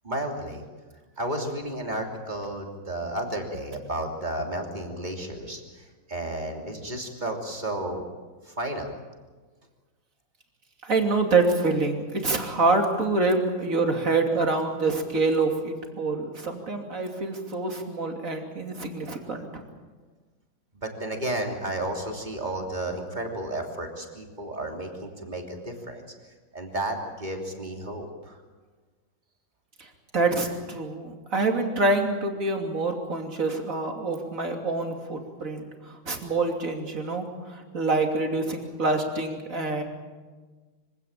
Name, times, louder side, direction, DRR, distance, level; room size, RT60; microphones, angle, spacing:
voice 1, 0.0-0.6 1.2-8.0 8.4-8.9 20.8-26.0 26.5-28.4, right 1 dB, 20° right, 2 dB, 3.2 m, -32 dB
voice 2, 10.8-19.6 29.8-39.8, right 3 dB, 40° right, 3 dB, 3.2 m, -26 dB
25.0 x 17.0 x 8.9 m, 1.4 s
omnidirectional pair, 2.2 m